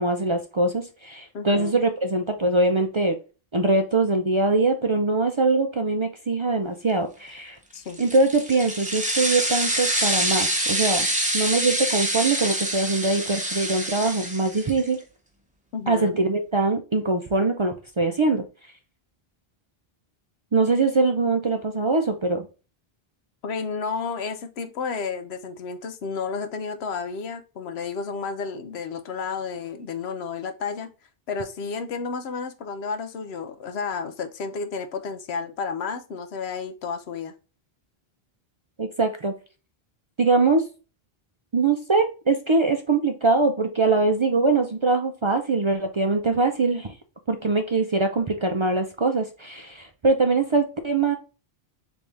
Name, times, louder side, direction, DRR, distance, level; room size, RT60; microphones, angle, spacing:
voice 1, 0.0-3.2 3.5-7.6 8.0-11.1 11.3-15.0 15.9-18.4 20.5-22.5 38.8-39.3 40.2-40.6 41.5-46.9 47.3-51.1, right 3 dB, 40° right, 0.4 m, -22 dB
voice 2, 1.3-1.7 7.7-8.0 15.7-16.1 23.4-30.9 31.3-37.3, left 5 dB, 85° left, 1.0 m, -31 dB
sound 1, 7.9-14.9, right 1 dB, 10° right, 0.9 m, -26 dB
3.5 x 3.4 x 3.9 m
omnidirectional pair, 1.1 m